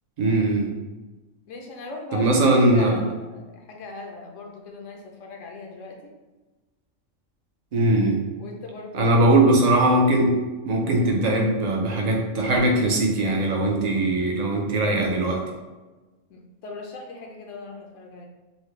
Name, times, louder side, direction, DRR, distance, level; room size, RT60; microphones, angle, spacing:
voice 1, 0.2-0.7 2.1-3.0 7.7-8.2 8.9-10.4 10.6-15.4, right 1 dB, 55° right, 0 dB, 0.4 m, -20 dB
voice 2, 1.5-2.3 2.7-6.1 8.4-9.1 16.3-18.3, left 3 dB, 75° left, 1 dB, 0.9 m, -39 dB
3.9 x 2.1 x 3.1 m, 1.2 s
omnidirectional pair, 1.4 m